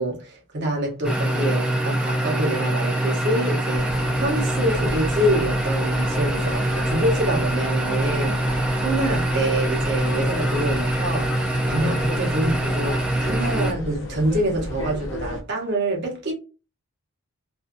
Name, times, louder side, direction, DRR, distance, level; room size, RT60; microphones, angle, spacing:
voice 1, 0.0-11.3 11.7-16.3, right 1 dB, 50° right, 0.9 m, -26 dB
Fueling a car, 1.0-13.7, right 1 dB, 5° right, 0.3 m, -24 dB
sound 1, 3.7-15.4, left 1 dB, 60° left, 0.6 m, -34 dB
2.6 x 2.2 x 2.5 m
head